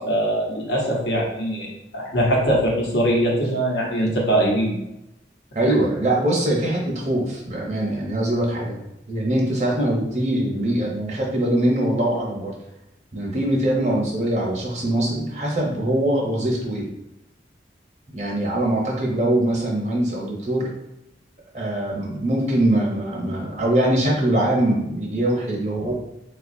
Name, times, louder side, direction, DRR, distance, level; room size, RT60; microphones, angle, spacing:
voice 1, 0.0-4.8 25.8-25.9, right 1 dB, 80° left, -2 dB, 0.9 m, -22 dB
voice 2, 5.5-8.8 9.1-12.5 13.1-16.9 18.1-20.7 21.5-25.9, right 1 dB, 40° right, -2 dB, 0.7 m, -22 dB
4.0 x 2.3 x 2.6 m, 0.88 s
head